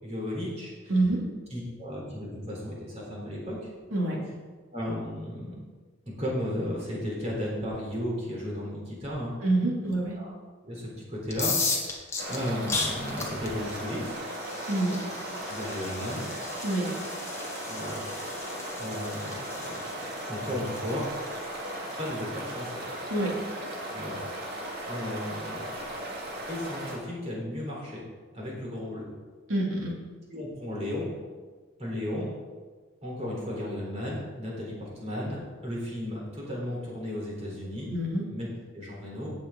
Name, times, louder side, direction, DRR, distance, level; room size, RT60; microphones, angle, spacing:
voice 1, 0.0-0.7 1.5-3.6 4.7-5.6 6.1-9.3 9.8-9.9 10.1-10.3 10.6-14.2 15.5-16.3 17.7-18.0 18.8-20.0 20.3-21.1 22.0-22.8 23.9-24.2 24.9-25.7 26.5-28.0 28.3-29.1 30.3-31.1 31.8-32.3 33.0-37.9 38.3-39.3, left 1 dB, 30° right, -4 dB, 3.8 m, -34 dB
voice 2, 9.4-10.2 14.7-15.0 16.6-16.9 23.1-23.3 29.5-29.9 37.9-38.3, right 2 dB, 85° right, -3 dB, 3.0 m, -26 dB
sound 1, 11.2-23.0, left 3 dB, 15° left, 1.3 m, -36 dB
sound 2, 12.2-27.0, right 1 dB, 50° right, 2.0 m, -37 dB
16.0 x 7.4 x 3.9 m, 1.4 s
head